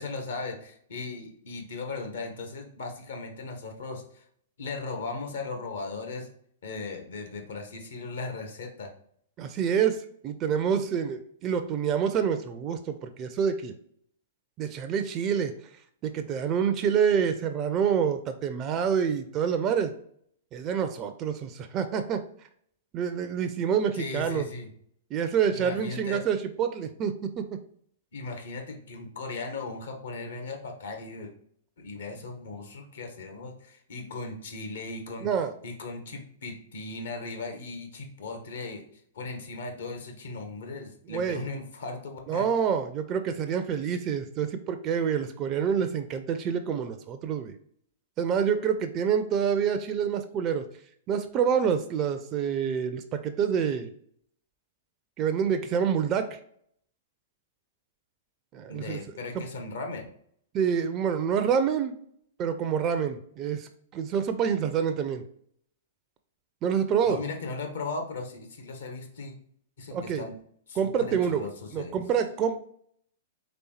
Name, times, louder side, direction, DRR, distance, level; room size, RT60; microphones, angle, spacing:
voice 1, 0.0-4.2 4.6-6.3 6.6-8.9 23.9-24.7 25.5-26.2 28.1-31.3 31.8-35.3 35.6-38.8 39.1-42.5 58.7-60.1 67.1-69.3 69.8-70.3 70.7-71.9, left 3 dB, 70° left, 4 dB, 1.0 m, -37 dB
voice 2, 9.4-13.8 14.6-15.5 16.0-19.9 20.5-22.2 22.9-24.4 25.1-27.6 35.2-35.5 41.1-41.4 42.3-47.6 48.2-50.7 51.1-53.9 55.2-56.4 58.5-59.0 59.3-59.4 60.5-61.9 62.4-65.2 66.6-67.2 69.9-70.2 70.8-71.5 71.7-72.6, right 7 dB, 30° right, 7 dB, 0.4 m, -27 dB
4.1 x 3.3 x 3.1 m, 0.63 s
figure-of-eight pair, 110°, 0 cm